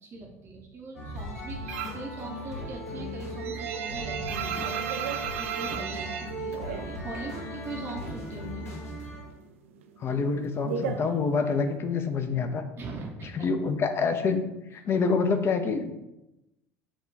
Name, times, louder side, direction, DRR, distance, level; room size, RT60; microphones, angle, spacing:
voice 1, 0.0-4.7 5.1-8.7 12.8-13.5, right 3 dB, 35° right, 0 dB, 0.7 m, -41 dB
sound 1, 0.9-9.3, equal, 85° left, 0.9 m, -37 dB
sound 2, 1.7-2.1 2.5-7.3 7.6-8.7 8.9-11.8, right 8 dB, 65° right, 0.3 m, -34 dB
voice 2, 10.0-12.6 13.3-14.4 14.7-15.9, left 4 dB, 30° left, 7 dB, 0.5 m, -26 dB
6.0 x 2.3 x 3.3 m, 0.93 s
figure-of-eight pair, 65°, 8 cm